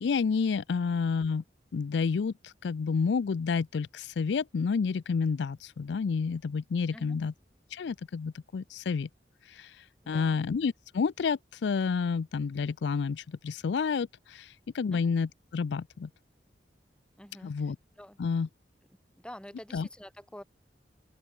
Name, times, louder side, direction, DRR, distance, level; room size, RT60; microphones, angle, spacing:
voice 1, 0.0-1.4 1.7-7.3 7.7-9.1 9.5-16.1 17.4-17.8 18.2-18.5 19.7-19.9, left 5 dB, 80° left, 0.4 m, -30 dB
voice 2, 10.0-10.4 14.9-15.0 17.2-18.2 19.2-20.4, equal, 5° left, 2.2 m, -48 dB
open air
head